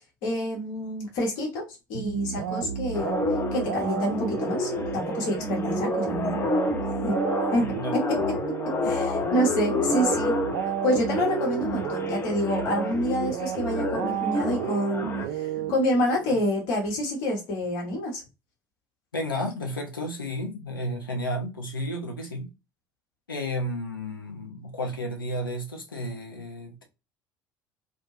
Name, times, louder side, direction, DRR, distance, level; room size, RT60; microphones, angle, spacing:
voice 1, 0.0-1.6 1.9-3.2 3.5-6.3 7.0-7.2 7.5-7.6 7.9-8.0 8.6-10.3 10.8-18.2, equal, 55° left, 1.0 m, -28 dB
sound 1, 1.9-16.3, right 9 dB, 60° right, 0.4 m, -32 dB
sound 2, 2.9-15.3, left 3 dB, 20° left, 0.5 m, -30 dB
voice 2, 7.6-7.9 19.1-22.5 23.3-26.8, left 1 dB, 80° left, 0.6 m, -32 dB
2.5 x 2.1 x 2.9 m
figure-of-eight pair, 65°, 11 cm